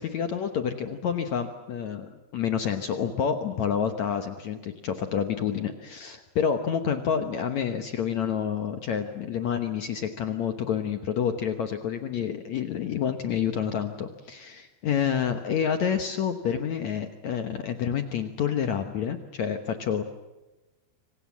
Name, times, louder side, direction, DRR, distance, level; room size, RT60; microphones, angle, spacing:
voice 1, 0.0-20.0, left 8 dB, 75° left, 7 dB, 1.7 m, -28 dB
27.5 x 25.5 x 7.4 m, 1.1 s
omnidirectional pair, 5.0 m